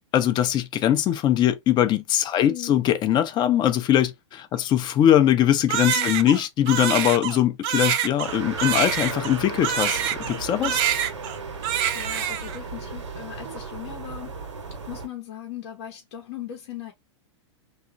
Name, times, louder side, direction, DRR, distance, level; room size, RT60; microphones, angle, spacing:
voice 1, 0.1-10.8, left 11 dB, 30° left, 0.5 m, -21 dB
voice 2, 2.4-2.8 4.5-4.7 5.9-6.3 10.6-10.8 11.6-14.4 14.9-16.9, left 11 dB, 65° left, 0.9 m, -38 dB
Crying sobbing, 5.7-10.4 10.6-11.4 11.6-12.6, right 10 dB, 45° right, 0.5 m, -26 dB
sound 1, 8.2-15.1, right 4 dB, 85° right, 0.9 m, -35 dB
2.9 x 2.3 x 2.5 m
hypercardioid pair, 110°, 15 cm